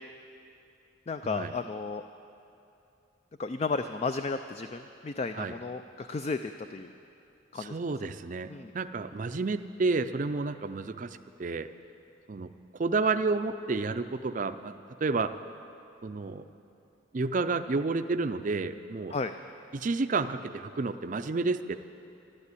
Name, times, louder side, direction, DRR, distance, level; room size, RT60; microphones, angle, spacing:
voice 1, 1.1-2.0 3.4-6.9 7.5-7.8 8.5-8.7 19.1-19.3, left 4 dB, 30° left, 9 dB, 0.3 m, -33 dB
voice 2, 7.6-8.5 8.7-11.7 12.3-15.3 16.0-16.4 17.1-19.1 19.7-21.8, right 3 dB, 40° right, 10 dB, 0.4 m, -30 dB
12.5 x 11.5 x 8.4 m, 2.7 s
head